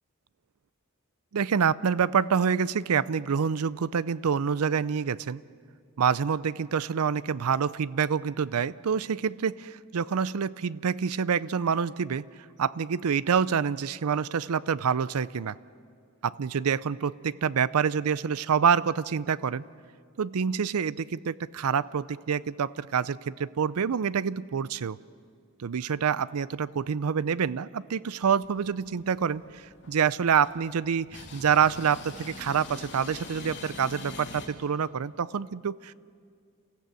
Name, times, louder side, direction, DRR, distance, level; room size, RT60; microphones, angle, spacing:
voice 1, 1.3-5.4 6.0-12.3 12.6-15.6 16.2-19.6 20.2-25.0 25.6-35.9, right 7 dB, 85° right, 19 dB, 0.5 m, -27 dB
sound 1, 28.2-34.5, left 3 dB, 50° left, 2.9 m, -45 dB
29.5 x 15.0 x 7.7 m, 2.2 s
head